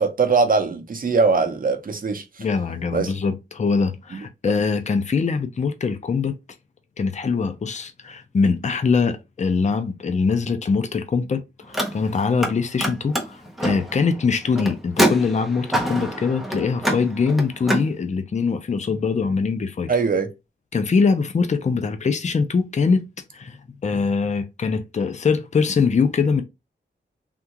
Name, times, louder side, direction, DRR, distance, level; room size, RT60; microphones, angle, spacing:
voice 1, 0.0-2.2 2.9-3.1 4.1-4.2 19.9-20.3, right 4 dB, 50° right, 0.6 m, -21 dB
voice 2, 2.4-6.4 7.0-19.9 20.7-23.1 23.3-23.6 23.8-26.4, left 5 dB, 40° left, 0.5 m, -22 dB
Car, 11.6-12.5 12.8-17.9, equal, ahead, 0.7 m, -25 dB
3.5 x 2.4 x 2.8 m
wide cardioid pair, 130°, 19 cm